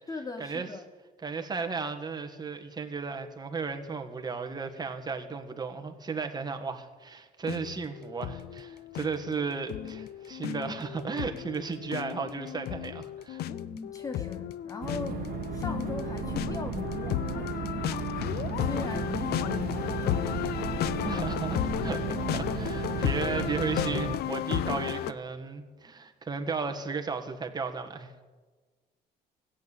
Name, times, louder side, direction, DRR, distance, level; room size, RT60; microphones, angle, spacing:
voice 1, 0.1-0.9 13.4-20.4, left 4 dB, 20° left, 8 dB, 0.8 m, -40 dB
voice 2, 1.2-13.4 21.0-22.0 22.3-28.1, right 5 dB, 25° right, 6 dB, 1.7 m, -35 dB
sound 1, 7.4-25.1, left 12 dB, 70° left, 0.6 m, -34 dB
sound 2, 14.8-24.2, right 8 dB, 65° right, 1.2 m, -35 dB
16.5 x 8.5 x 8.9 m, 1.4 s
cardioid pair, 110°, 17 cm